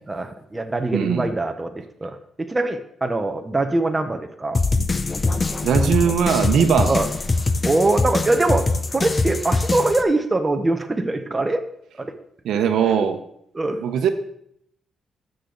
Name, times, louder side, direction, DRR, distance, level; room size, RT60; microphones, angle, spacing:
voice 1, 0.1-4.6 6.9-7.1 7.6-11.6 12.0-12.1 13.5-13.8, right 2 dB, 20° right, 6 dB, 0.9 m, -23 dB
voice 2, 0.9-1.3 5.6-6.9 12.4-13.2 13.8-14.1, right 7 dB, 80° right, 8 dB, 0.9 m, -20 dB
sound 1, 4.5-10.0, left 3 dB, 25° left, 0.6 m, -23 dB
12.5 x 6.6 x 3.9 m, 0.71 s
cardioid pair, 115°, 0 cm